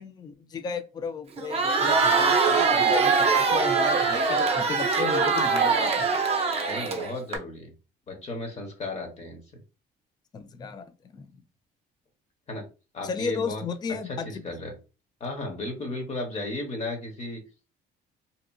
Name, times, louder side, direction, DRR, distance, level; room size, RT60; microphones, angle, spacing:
voice 1, 0.0-6.0 10.3-11.3 13.0-14.4, left 5 dB, 25° left, 9 dB, 0.3 m, -34 dB
Crowd, 1.4-7.4, right 4 dB, 35° right, 0.6 m, -23 dB
voice 2, 6.6-7.7 8.1-9.4 12.5-12.6 12.9-13.6 14.0-14.7 15.2-17.4, left 2 dB, 40° left, 3 dB, 1.0 m, -34 dB
2.8 x 2.4 x 2.2 m, 0.31 s
cardioid pair, 110°, 17 cm